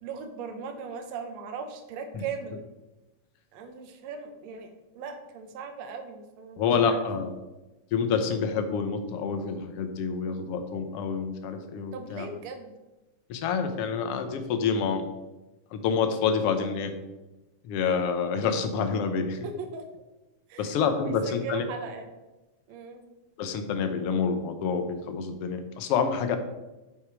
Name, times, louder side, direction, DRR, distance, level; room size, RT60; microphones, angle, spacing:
voice 1, 0.0-2.7 3.5-7.0 11.9-12.7 19.4-19.9 20.5-20.7 21.0-22.1 22.7-23.0, right 5 dB, 65° right, 6 dB, 2.1 m, -38 dB
voice 2, 6.6-7.3 7.9-12.3 13.3-15.0 15.7-16.9 17.6-19.4 20.6-21.7 23.4-26.4, left 6 dB, 65° left, 7 dB, 1.6 m, -27 dB
9.2 x 6.7 x 4.7 m, 1.0 s
omnidirectional pair, 3.5 m